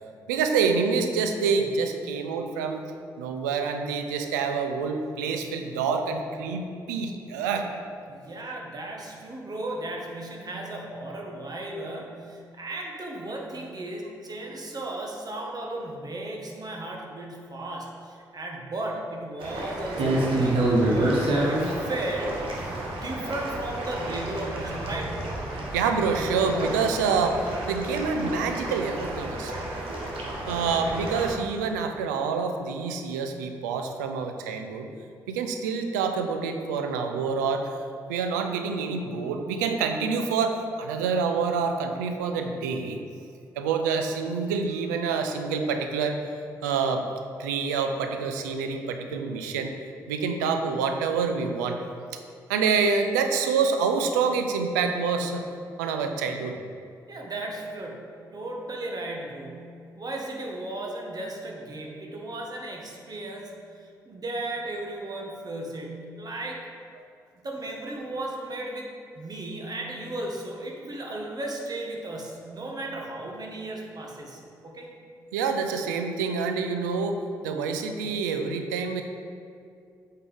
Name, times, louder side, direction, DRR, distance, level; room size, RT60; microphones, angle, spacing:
voice 1, 0.3-2.8 3.2-7.7 25.7-27.4 27.7-29.5 30.5-34.9 35.3-37.7 38.1-43.0 43.6-46.2 46.6-47.1 47.4-49.7 50.1-51.8 52.5-55.4 55.8-56.6 75.3-77.2 77.4-79.0, right 5 dB, 90° right, 5 dB, 0.5 m, -27 dB
voice 2, 8.1-22.4 22.8-25.1 57.1-59.6 60.0-66.6 67.4-68.9 69.1-74.9, right 1 dB, 45° right, 0 dB, 1.5 m, -35 dB
sound 1, 19.4-31.3, right 1 dB, 70° right, 1.3 m, -29 dB
8.5 x 4.6 x 3.6 m, 2.4 s
hypercardioid pair, 40°, 9 cm